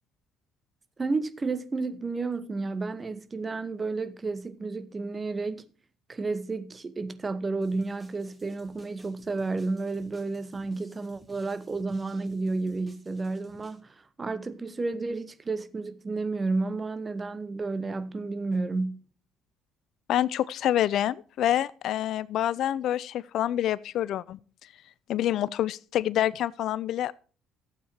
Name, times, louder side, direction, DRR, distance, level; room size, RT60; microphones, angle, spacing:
voice 1, 1.0-5.7 6.1-19.1, right 3 dB, 30° right, 1.0 m, -31 dB
sound 1, 7.6-13.8, right 1 dB, 10° right, 2.2 m, -57 dB
voice 2, 20.1-24.4 25.1-27.1, left 12 dB, 65° left, 0.4 m, -27 dB
12.0 x 8.3 x 4.3 m
hypercardioid pair, 60°, 0 cm